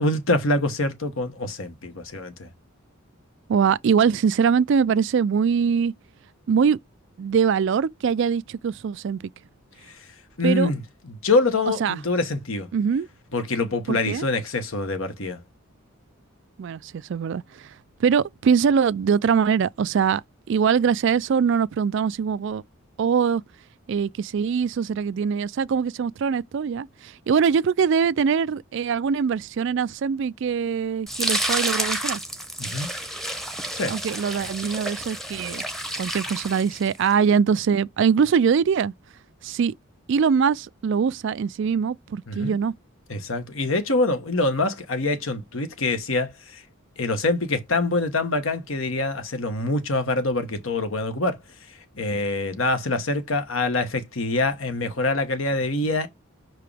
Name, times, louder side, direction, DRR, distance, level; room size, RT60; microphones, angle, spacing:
voice 1, 0.0-2.5 9.9-10.0 10.4-12.7 13.3-15.4 32.6-32.9 33.7-34.0 42.3-42.5 43.1-46.6 47.0-51.4 51.9-56.1, left 2 dB, 75° left, 1.3 m, -25 dB
voice 2, 3.5-5.9 6.5-6.8 7.2-9.2 10.4-10.7 11.8-12.0 12.7-13.1 13.9-14.3 16.6-17.7 18.0-20.2 20.5-22.6 23.0-23.4 23.9-32.2 33.9-35.6 36.0-38.9 39.4-39.7 40.1-42.7, right 6 dB, 60° right, 0.3 m, -22 dB
sound 1, 31.1-37.1, right 1 dB, ahead, 0.8 m, -30 dB
6.0 x 4.7 x 3.4 m
head